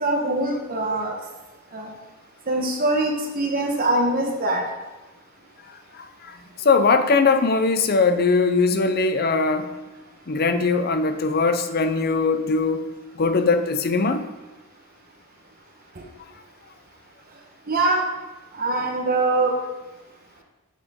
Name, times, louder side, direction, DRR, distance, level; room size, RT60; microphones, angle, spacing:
voice 1, 0.0-1.2 1.7-1.9 2.5-4.6 17.7-18.0 18.6-19.6, right 2 dB, 45° right, 1 dB, 1.1 m, -23 dB
voice 2, 5.9-9.7 10.3-12.8 13.1-14.2, left 4 dB, 45° left, 9 dB, 0.5 m, -21 dB
7.9 x 7.4 x 3.6 m, 1.1 s
head